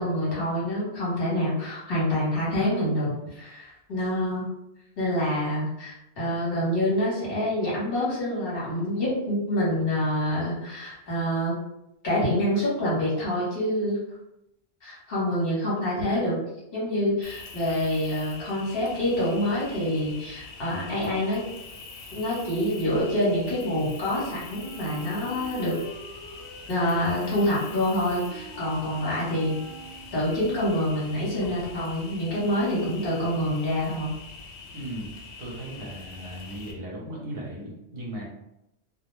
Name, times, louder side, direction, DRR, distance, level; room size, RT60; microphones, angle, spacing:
voice 1, 0.0-4.5 5.0-11.5 12.0-14.0 14.8-16.4 16.7-21.4 22.1-25.8 26.7-29.7 30.1-34.1, left 1 dB, 55° left, -7 dB, 1.2 m, -26 dB
Cricket, 17.2-36.7, left 4 dB, 75° left, 0.9 m, -44 dB
Wind instrument woodwind instrument, 24.5-30.3, equal, 25° left, 0.8 m, -44 dB
voice 2, 34.7-35.1 35.4-38.2, right 1 dB, 60° right, -3 dB, 0.9 m, -37 dB
2.3 x 2.1 x 3.1 m, 0.86 s
omnidirectional pair, 1.2 m